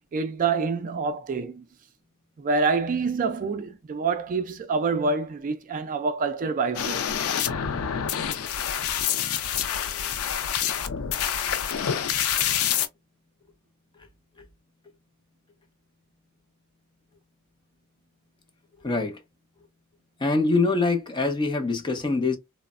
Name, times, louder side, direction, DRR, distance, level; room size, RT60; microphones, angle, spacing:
voice 1, 0.1-1.6 2.4-7.1, right 4 dB, 40° right, 0.3 m, -26 dB
sound 1, 6.7-12.9, left 9 dB, 85° left, 0.4 m, -27 dB
voice 2, 18.8-19.2 20.2-22.4, left 3 dB, 20° left, 0.6 m, -24 dB
3.0 x 2.1 x 2.3 m
head